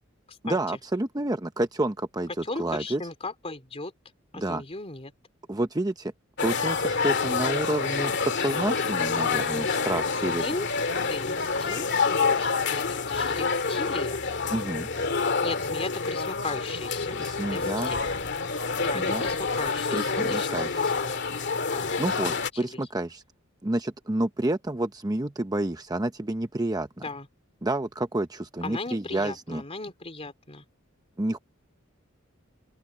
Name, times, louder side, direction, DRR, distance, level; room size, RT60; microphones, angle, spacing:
voice 1, 0.4-3.0 4.3-4.6 5.5-6.1 6.4-10.4 14.5-14.9 17.2-17.9 18.9-19.3 19.9-20.9 22.0-23.2 23.6-26.9 27.6-29.6 31.2-31.4, right 1 dB, 20° right, 0.8 m, -29 dB
voice 2, 2.4-3.9 4.3-5.1 10.4-10.7 11.1-14.2 15.4-17.2 17.5-18.0 18.8-21.9 22.5-22.8 27.0-27.3 28.6-30.6, left 3 dB, 30° left, 3.4 m, -37 dB
sound 1, 6.4-22.5, left 4 dB, 60° left, 2.2 m, -27 dB
open air
head